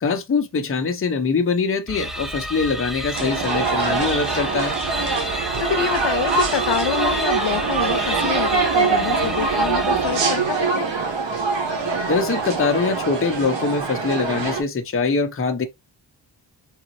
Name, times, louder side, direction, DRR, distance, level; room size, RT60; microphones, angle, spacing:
voice 1, 0.0-4.7 12.1-15.7, left 4 dB, 30° left, 0.8 m, -23 dB
sound 1, 1.9-10.6, equal, ahead, 0.4 m, -30 dB
sound 2, 3.1-14.6, right 4 dB, 85° right, 1.4 m, -23 dB
voice 2, 5.6-10.9, left 9 dB, 75° left, 0.8 m, -27 dB
3.9 x 3.9 x 3.0 m
wide cardioid pair, 160°, 43 cm